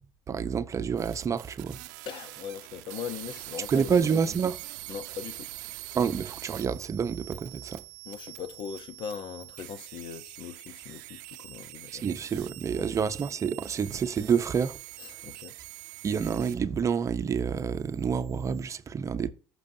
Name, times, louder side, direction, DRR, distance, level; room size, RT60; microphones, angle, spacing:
voice 1, 0.3-1.8 3.7-4.6 5.9-7.8 11.9-14.8 16.0-19.3, right 6 dB, 35° right, 0.7 m, -28 dB
sound 1, 1.0-16.8 17.1-18.7, right 18 dB, 90° right, 0.6 m, -44 dB
voice 2, 2.0-3.9 4.9-5.6 8.0-12.0 12.8-12.9 15.0-15.6, left 7 dB, 60° left, 0.8 m, -40 dB
14.5 x 6.1 x 2.7 m
supercardioid pair, 95°, 10 cm